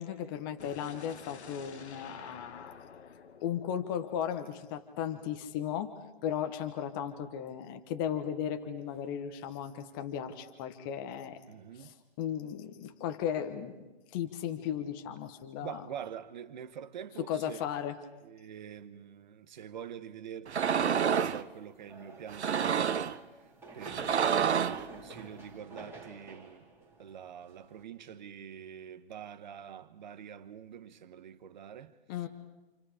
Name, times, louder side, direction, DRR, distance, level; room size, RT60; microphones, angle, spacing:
voice 1, 0.0-2.7 3.4-5.9 6.2-11.4 11.8-13.7 14.1-15.8 17.2-18.0 32.1-32.3, left 9 dB, 20° left, 1.1 m, -36 dB
sound 1, 0.6-4.6, left 6 dB, 85° left, 1.5 m, -50 dB
voice 2, 11.5-11.9 15.6-17.7 18.2-23.2 23.7-26.7 27.0-31.9, right 9 dB, 45° right, 1.3 m, -45 dB
sound 2, 20.5-21.4 22.3-23.2 23.8-24.9, right 7 dB, 85° right, 1.0 m, -28 dB
sound 3, 20.7-27.8, right 2 dB, 5° right, 2.6 m, -49 dB
28.5 x 28.0 x 5.0 m
hypercardioid pair, 160°, 32 cm